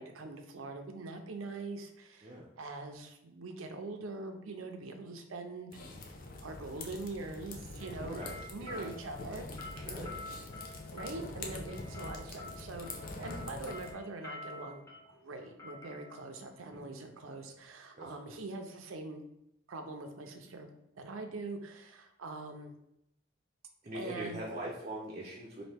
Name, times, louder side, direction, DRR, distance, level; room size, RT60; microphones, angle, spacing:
voice 1, 0.0-5.8 6.4-9.5 10.9-12.9 13.2-19.2 19.7-20.7 21.0-22.7 23.9-24.4, right 3 dB, 90° right, 5 dB, 0.6 m, -43 dB
sound 1, 5.7-13.9, left 2 dB, 45° left, 0.5 m, -44 dB
sound 2, 7.8-17.6, left 2 dB, 15° left, 1.0 m, -49 dB
voice 2, 8.0-8.3 8.6-8.9 9.8-10.1 17.9-18.1 23.8-25.7, right 1 dB, 30° right, -4 dB, 0.6 m, -41 dB
4.1 x 2.7 x 3.3 m, 0.80 s
head